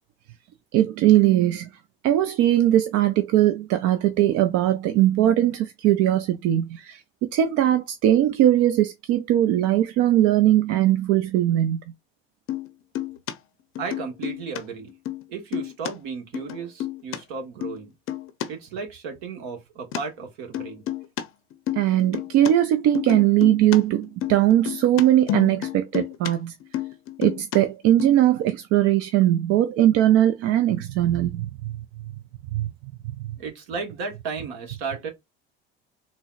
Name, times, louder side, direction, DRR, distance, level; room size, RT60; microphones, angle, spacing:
voice 1, 0.7-1.7 2.0-11.8 21.8-26.5 27.2-31.8 32.5-32.7 33.2-33.4, right 12 dB, 50° right, 0.4 m, -20 dB
sound 1, 12.5-12.7 13.0-13.3 13.8-14.6 14.9-15.2 15.5-15.9 16.3-17.2 17.6-17.8 18.1-18.5 19.9-20.0 20.5-21.2 21.5-22.5 23.0-23.8 24.0-26.3 26.6-27.6 28.0-28.1, left 12 dB, 45° left, 0.6 m, -30 dB
voice 2, 13.8-14.9 15.3-17.9 18.5-20.9 33.4-35.1, right 5 dB, 65° right, 1.2 m, -34 dB
3.7 x 2.0 x 2.4 m
hypercardioid pair, 75°, 31 cm